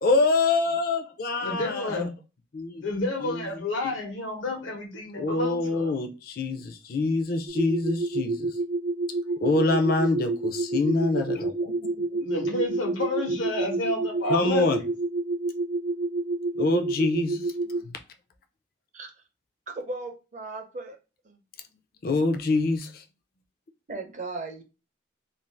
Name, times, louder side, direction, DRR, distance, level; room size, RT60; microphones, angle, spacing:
voice 1, 0.0-2.1 2.5-2.8 3.2-3.5 3.8-3.9 5.2-8.5 9.4-11.9 14.3-14.8 16.5-17.5 17.8-18.0 22.0-23.0, left 3 dB, 50° left, 0.4 m, -25 dB
voice 2, 1.4-2.1 2.8-5.9 12.2-14.9, left 2 dB, 85° left, 1.0 m, -30 dB
sound 1, 7.5-17.8, right 2 dB, 85° right, 0.4 m, -28 dB
voice 3, 19.7-21.0 21.2-21.4 23.9-24.6, right 3 dB, 40° right, 0.5 m, -36 dB
2.5 x 2.4 x 3.2 m
head